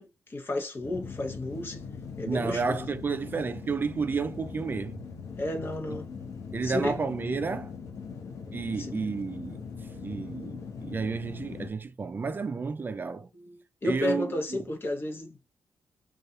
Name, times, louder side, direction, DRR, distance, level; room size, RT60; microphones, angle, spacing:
voice 1, 0.0-1.8 2.2-2.8 5.4-6.1 6.6-7.0 8.8-8.9 13.3-15.6, left 2 dB, 45° left, 0.9 m, -33 dB
sound 1, 0.8-11.7, left 5 dB, 75° left, 0.7 m, -41 dB
voice 2, 2.3-5.0 5.9-6.0 6.5-7.7 8.5-9.6 10.0-13.3 13.8-14.3, right 4 dB, 40° right, 0.3 m, -31 dB
2.6 x 2.3 x 2.4 m
supercardioid pair, 45°, 6 cm